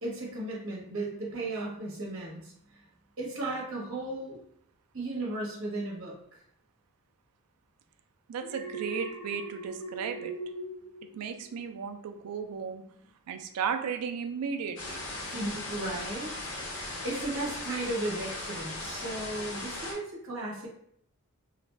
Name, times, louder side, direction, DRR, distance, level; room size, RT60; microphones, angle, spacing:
voice 1, 0.0-2.9 3.2-4.4 4.9-6.1 15.3-16.3 16.7-20.7, right 2 dB, 60° right, -4 dB, 0.8 m, -35 dB
voice 2, 8.3-10.3 11.1-12.8 13.3-15.0, right 6 dB, 85° right, 7 dB, 0.3 m, -35 dB
Alarm, 8.4-11.7 12.1-12.4, right 2 dB, 45° left, 0.8 m, -41 dB
sound 1, 14.8-19.9, left 2 dB, 75° left, 0.7 m, -38 dB
2.4 x 2.1 x 3.2 m, 0.68 s
head